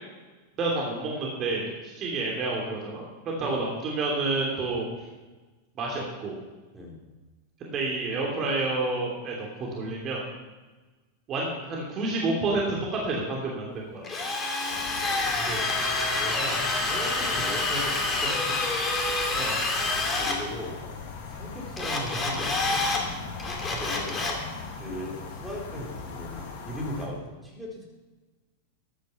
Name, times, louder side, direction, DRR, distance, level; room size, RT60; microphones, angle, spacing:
voice 1, 0.6-4.9 5.8-6.4 7.6-10.2 11.3-14.1 19.3-19.6, right 3 dB, 30° right, -2 dB, 3.0 m, -29 dB
Drill, 14.0-20.4 21.8-23.0 23.4-24.4, left 3 dB, 20° left, 2.6 m, -27 dB
sound 1, 14.7-27.1, left 4 dB, 50° left, 2.3 m, -40 dB
voice 2, 16.1-18.6 20.1-20.8 21.3-22.8 23.6-24.3 24.7-27.8, equal, 5° right, -3 dB, 4.0 m, -37 dB
13.5 x 10.5 x 5.8 m, 1.2 s
figure-of-eight pair, 90°, 0 cm